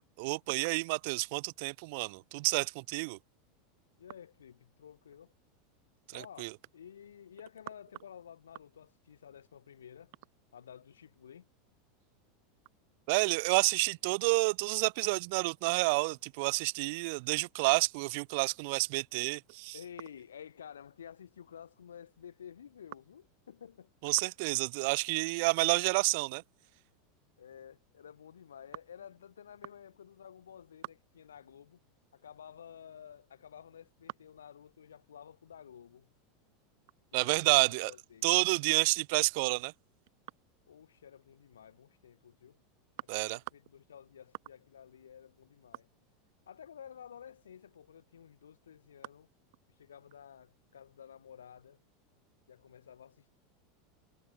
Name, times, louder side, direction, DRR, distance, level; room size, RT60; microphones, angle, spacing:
voice 1, 0.2-3.2 6.1-6.5 13.1-19.7 24.0-26.4 37.1-37.9 38.2-39.7 43.1-43.4, right 28 dB, 60° right, 0.8 m, -29 dB
voice 2, 4.0-5.3 6.1-10.1 10.5-11.5 19.7-23.9 25.5-25.6 27.4-31.8 32.1-36.1 37.1-38.3 40.7-42.6 43.1-45.9 46.5-49.3 49.8-51.8 52.5-53.3, left 8 dB, 80° left, 7.8 m, -52 dB
hypercardioid pair, 85°, 0 cm